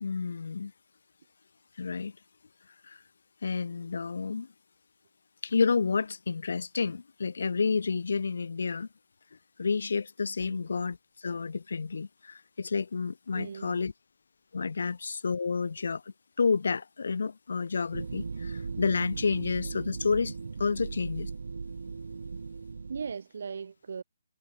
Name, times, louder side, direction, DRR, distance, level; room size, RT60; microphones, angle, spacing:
voice 1, 0.0-0.7 1.8-2.1 2.9-3.0 3.4-4.5 5.4-8.9 9.6-13.9 14.5-16.0 16.4-20.3 20.6-21.3, left 5 dB, 65° left, 0.7 m, -30 dB
voice 2, 13.3-13.8 22.9-24.0, right 6 dB, 55° right, 2.0 m, -38 dB
sound 1, 17.9-23.1, right 4 dB, 70° right, 0.5 m, -38 dB
hypercardioid pair, 175°, 0 cm